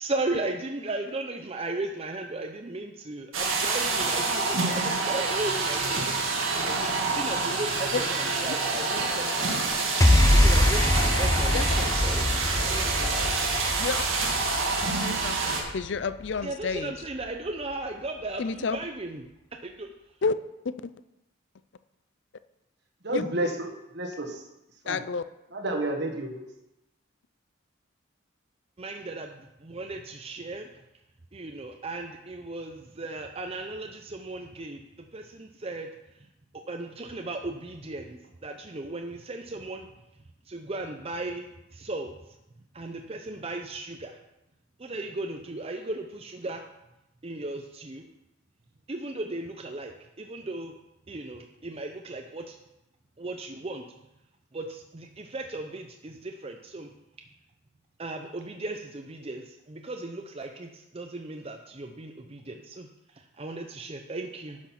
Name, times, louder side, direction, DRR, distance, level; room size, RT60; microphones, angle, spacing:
voice 1, 0.0-6.0 6.5-9.5 10.3-12.4 12.6-13.2 16.4-19.3 19.6-19.9 28.8-30.7 31.3-35.9 36.7-39.9 40.5-42.4 42.7-44.2 44.8-46.6 47.2-48.1 48.9-50.8 51.1-52.6 53.2-53.8 54.5-56.9 58.0-64.6, right 2 dB, 30° right, 4 dB, 0.6 m, -36 dB
sound 1, 3.3-15.6, right 3 dB, 85° right, 1.9 m, -27 dB
sound 2, 10.0-16.4, left 1 dB, 15° left, 0.6 m, -24 dB
voice 2, 14.9-16.9 18.4-18.8 20.2-20.4 20.6-20.9 23.1-23.2 24.9-25.2, left 5 dB, 60° left, 14 dB, 0.5 m, -30 dB
voice 3, 23.0-24.4 24.8-25.0 25.5-26.4, right 1 dB, 55° right, 3 dB, 1.5 m, -30 dB
10.5 x 6.4 x 5.9 m, 0.92 s
head